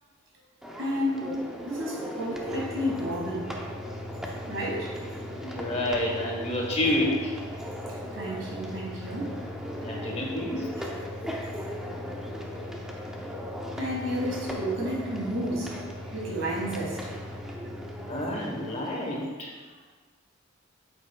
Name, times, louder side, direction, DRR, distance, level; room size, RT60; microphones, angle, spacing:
sound 1, 0.6-19.3, equal, 5° right, 0.6 m, -39 dB
voice 1, 0.8-1.3 1.7-3.5 4.5-5.0 7.7-9.4 11.3-11.8 13.8-17.1 17.4-17.6, equal, 65° right, -3 dB, 2.0 m, -32 dB
sound 2, 2.4-18.5, left 1 dB, 50° left, 1.2 m, -42 dB
voice 2, 5.4-7.3 9.8-10.8 18.0-19.5, left 1 dB, 30° left, -1 dB, 1.1 m, -29 dB
9.0 x 6.7 x 2.3 m, 1.4 s
head